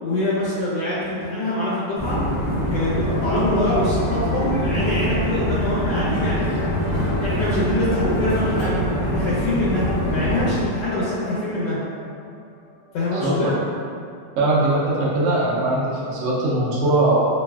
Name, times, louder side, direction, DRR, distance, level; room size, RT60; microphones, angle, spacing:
voice 1, 0.0-2.2 2.7-6.5 7.2-11.8 12.9-13.5, left 1 dB, 80° left, -9 dB, 1.2 m, -24 dB
sound 1, 2.0-10.5, equal, 10° right, 0.5 m, -24 dB
sound 2, 3.7-13.5 14.2-14.3, equal, 65° left, 0.8 m, -34 dB
voice 2, 14.4-17.2, right 2 dB, 75° right, -6 dB, 0.7 m, -20 dB
3.1 x 2.5 x 2.2 m, 2.3 s
omnidirectional pair, 1.9 m